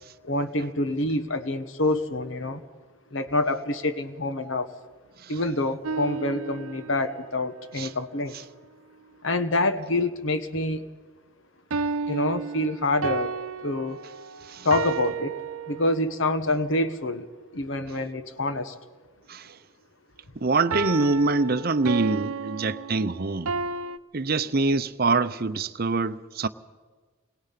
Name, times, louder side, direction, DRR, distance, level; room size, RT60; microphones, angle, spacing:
voice 1, 0.2-2.6 3.1-4.7 5.3-8.4 9.2-10.8 12.1-13.3 13.6-14.0 14.6-15.4 15.7-17.3 17.5-18.7, left 2 dB, 65° left, 1.3 m, -26 dB
sound 1, 5.8-7.2 11.7-16.2 20.7-24.0, right 4 dB, 80° right, 0.7 m, -32 dB
voice 2, 20.4-23.5 24.1-26.5, right 3 dB, 45° right, 0.7 m, -24 dB
28.0 x 21.5 x 5.8 m
head